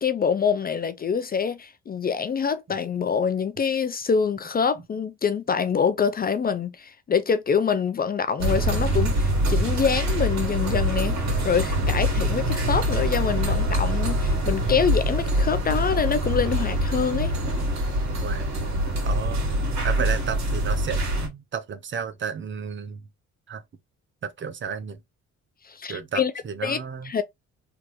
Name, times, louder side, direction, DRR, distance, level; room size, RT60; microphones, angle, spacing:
voice 1, 0.0-11.2 11.4-17.3 25.6-26.3 26.6-26.8 27.0-27.2, left 6 dB, 30° left, 0.4 m, -25 dB
sound 1, 8.4-21.3, equal, 65° right, 1.7 m, -24 dB
voice 2, 18.2-19.5 19.8-23.0 23.5-23.6 24.2-25.0 25.9-27.1, right 7 dB, 40° right, 0.6 m, -33 dB
3.4 x 2.5 x 2.9 m
cardioid pair, 90°, 30 cm